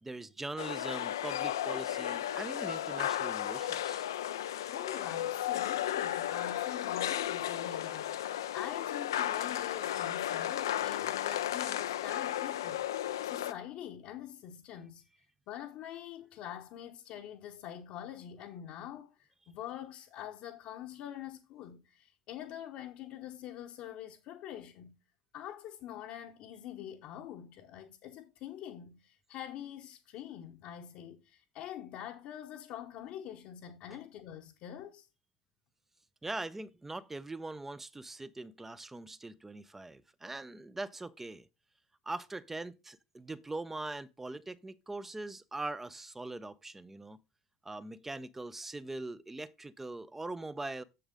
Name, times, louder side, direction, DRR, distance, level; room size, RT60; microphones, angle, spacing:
voice 1, 0.0-4.1 33.9-34.0 36.2-41.5 42.1-47.2 47.6-50.8, right 2 dB, 10° right, 0.6 m, -42 dB
sound 1, 0.6-13.5, left 12 dB, 75° left, 0.4 m, -34 dB
voice 2, 4.7-12.9 13.2-15.0 15.5-25.0 25.3-35.1, left 11 dB, 55° left, 0.9 m, -45 dB
7.2 x 6.7 x 3.7 m
hypercardioid pair, 70°, 2 cm